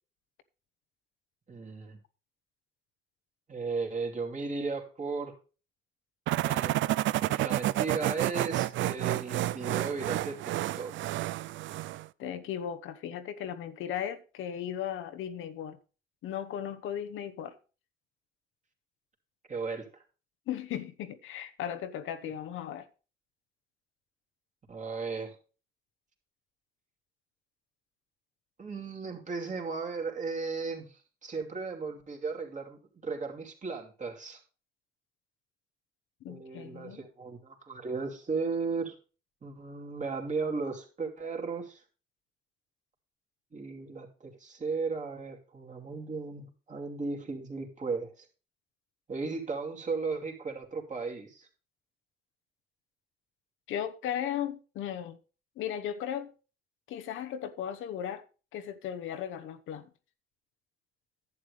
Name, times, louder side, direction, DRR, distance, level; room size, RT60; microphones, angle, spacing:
voice 1, 1.5-2.0 3.5-5.3 6.4-6.8 7.2-11.2 19.5-20.0 22.2-22.3 24.7-25.4 28.6-34.4 36.3-38.9 39.4-41.8 43.5-48.3 49.1-51.5, right 4 dB, 40° right, 2.6 m, -36 dB
sound 1, 6.3-12.1, right 15 dB, 75° right, 0.4 m, -30 dB
voice 2, 12.2-15.8 16.2-17.5 20.5-22.9 36.2-37.1 53.7-55.2 55.6-56.3 56.9-58.2 58.5-59.9, left 9 dB, 85° left, 1.0 m, -36 dB
11.0 x 8.3 x 3.3 m
cardioid pair, 90°, 20 cm